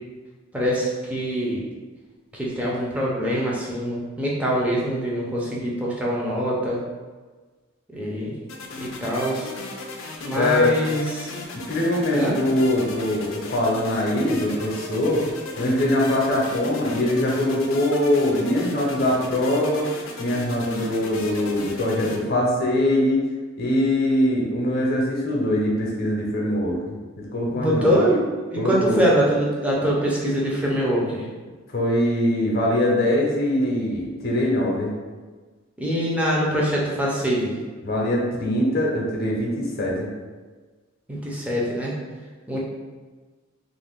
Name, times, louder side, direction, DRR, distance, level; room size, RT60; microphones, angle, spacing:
voice 1, 0.5-1.6 2.3-6.8 7.9-8.4 8.8-9.5 10.2-11.3 12.1-12.3 27.5-28.2 28.5-31.2 35.8-37.5 41.1-41.9 42.5-42.6, equal, 5° right, -5 dB, 0.5 m, -24 dB
sound 1, 8.5-22.2, left 3 dB, 90° left, 0.4 m, -36 dB
voice 2, 10.3-10.7 11.5-15.2 15.6-23.2 23.6-27.9 28.6-29.0 31.7-34.9 37.8-40.1, left 1 dB, 50° left, -3 dB, 0.6 m, -22 dB
2.5 x 2.1 x 3.4 m, 1.4 s
head